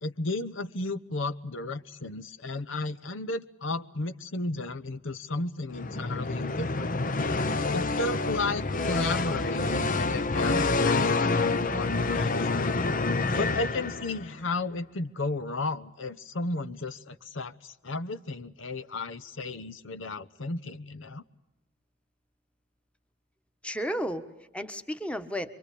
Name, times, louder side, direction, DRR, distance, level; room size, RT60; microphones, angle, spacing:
voice 1, 0.0-7.0 7.7-12.8 13.3-21.2, left 2 dB, 65° left, 11 dB, 0.9 m, -34 dB
sound 1, 5.7-14.4, left 3 dB, 40° left, 0.9 m, -27 dB
voice 2, 23.6-25.5, equal, 5° left, 9 dB, 1.4 m, -33 dB
27.5 x 23.5 x 8.5 m, 0.94 s
head